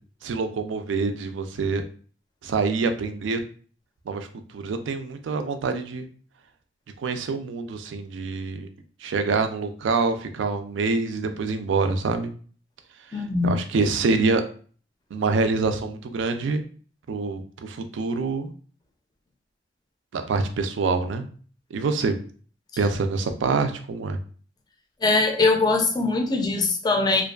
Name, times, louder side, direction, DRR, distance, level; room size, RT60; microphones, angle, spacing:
voice 1, 0.2-1.8 2.4-3.4 4.1-4.3 4.5-6.1 7.0-8.7 9.0-12.3 13.4-14.4 15.1-16.6 17.1-18.5 20.1-21.2 21.7-22.2 22.8-24.2, right 4 dB, 80° right, 7 dB, 0.4 m, -25 dB
voice 2, 13.1-13.6 25.0-27.2, left 3 dB, 20° left, 3 dB, 0.4 m, -21 dB
2.5 x 2.2 x 2.3 m, 0.42 s
head